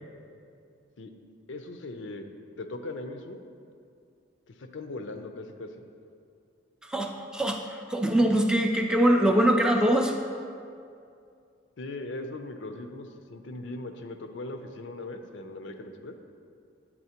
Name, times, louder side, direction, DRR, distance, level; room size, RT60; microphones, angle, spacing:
voice 1, 1.5-2.3 2.6-3.4 4.5-5.8 11.8-16.2, left 2 dB, 85° left, 6 dB, 0.5 m, -39 dB
voice 2, 6.8-10.1, right 1 dB, 5° right, 3 dB, 0.3 m, -23 dB
10.0 x 4.1 x 2.9 m, 2.4 s
head